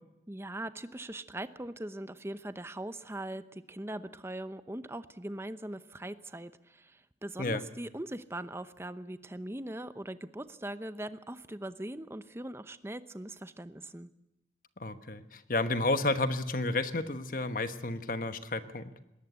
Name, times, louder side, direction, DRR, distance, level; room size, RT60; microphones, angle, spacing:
voice 1, 0.3-14.1, right 1 dB, 15° right, 12 dB, 0.8 m, -41 dB
voice 2, 14.8-18.9, left 2 dB, 50° left, 10 dB, 1.2 m, -31 dB
20.5 x 18.5 x 8.2 m, 0.93 s
head